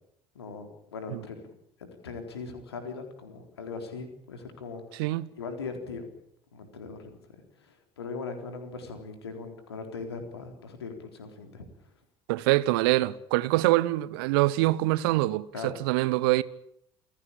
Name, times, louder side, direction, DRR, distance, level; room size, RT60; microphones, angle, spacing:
voice 1, 0.3-1.5 1.8-5.1 5.4-6.1 6.5-7.2 7.6-11.7 15.5-15.8, left 4 dB, 75° left, 3.8 m, -40 dB
voice 2, 4.9-5.3 12.3-16.4, right 18 dB, 60° right, 0.9 m, -25 dB
28.5 x 16.0 x 8.8 m
figure-of-eight pair, 60°, 14 cm